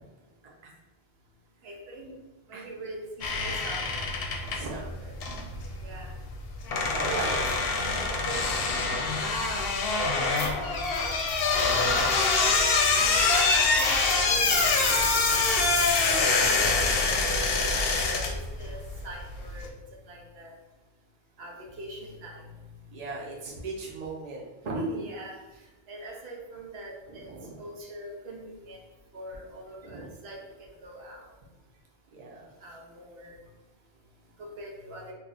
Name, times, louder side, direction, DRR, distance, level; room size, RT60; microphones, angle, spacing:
voice 1, 1.6-2.1 2.5-4.0 5.8-6.1 7.0-7.4 8.0-8.4 9.2-9.6 10.2-10.3 11.7-12.0 12.4-12.5 13.0-13.2 13.8-15.2 16.3-17.2 18.0-18.8 19.0-19.7 20.1-20.5 21.4-22.4 24.9-25.4 25.9-27.3 27.6-28.8 29.1-31.3 32.6-33.4 34.4-35.1, right 2 dB, 80° right, -1 dB, 0.9 m, -42 dB
sound 1, 3.2-19.7, left 3 dB, 70° left, 0.7 m, -25 dB
voice 2, 4.5-5.1 6.9-7.4 7.8-8.1 22.9-25.1 26.1-26.2 27.1-27.9 29.8-30.1 32.1-32.5, right 3 dB, 45° right, -3 dB, 0.7 m, -37 dB
sound 2, 10.4-10.5 10.7-16.2, left 2 dB, 35° left, 0.7 m, -36 dB
2.7 x 2.3 x 3.9 m, 1.1 s
omnidirectional pair, 1.0 m